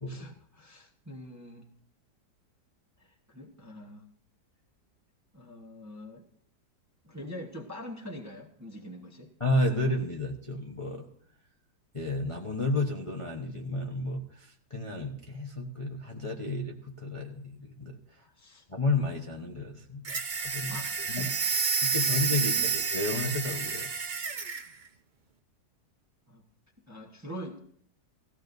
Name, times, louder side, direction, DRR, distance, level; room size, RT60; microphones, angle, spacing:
voice 1, 0.1-1.7 3.0-4.0 5.3-6.2 7.0-9.3 18.2-18.6 20.7-21.3 21.9-22.0 22.3-22.8 26.3-26.4 26.9-27.6, equal, 10° right, 0 dB, 1.0 m, -44 dB
voice 2, 9.4-11.1 11.9-17.9 18.7-20.0 20.4-21.3 21.8-23.9, left 2 dB, 25° left, 0 dB, 0.9 m, -32 dB
sound 1, 20.0-24.7, right 5 dB, 40° right, 0.7 m, -30 dB
18.0 x 15.0 x 2.7 m, 0.63 s
omnidirectional pair, 1.8 m